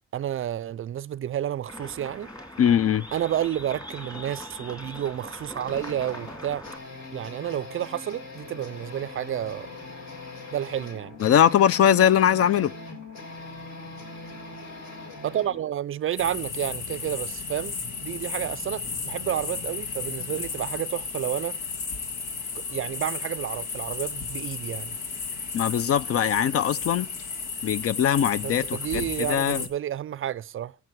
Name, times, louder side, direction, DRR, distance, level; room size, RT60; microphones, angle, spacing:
voice 1, 0.1-2.3 3.1-6.6 7.1-9.7 10.5-11.2 15.2-17.7 18.0-21.6 22.7-24.9 28.4-30.8, right 11 dB, 45° right, 0.4 m, -30 dB
sound 1, 1.7-6.8, left 1 dB, 15° left, 2.6 m, -41 dB
voice 2, 2.6-3.0 11.2-12.7 25.5-27.1 27.6-29.0 29.3-29.6, left 9 dB, 50° left, 0.5 m, -21 dB
sound 2, 5.6-15.7, left 2 dB, 65° left, 3.3 m, -41 dB
sound 3, 16.2-29.7, left 5 dB, 85° left, 1.6 m, -34 dB
15.5 x 5.9 x 4.6 m
cardioid pair, 90°, 30 cm